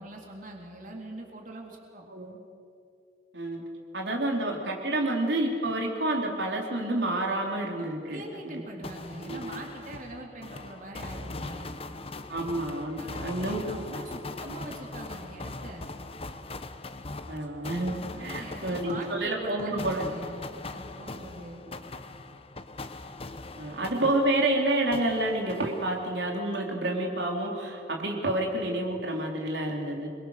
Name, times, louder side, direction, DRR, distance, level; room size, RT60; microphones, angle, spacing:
voice 1, 0.0-2.0 7.8-11.8 13.0-15.9 18.1-21.6, right 1 dB, 50° right, 0 dB, 3.5 m, -43 dB
voice 2, 2.1-2.4 3.3-3.6 3.9-8.9 9.2-9.6 12.3-13.7 17.3-20.0 23.6-30.1, right 1 dB, 80° right, 0 dB, 3.9 m, -29 dB
sound 1, 8.8-24.6 24.9-26.3, left 2 dB, 35° left, 1.2 m, -41 dB
28.0 x 23.0 x 6.7 m, 2.4 s
head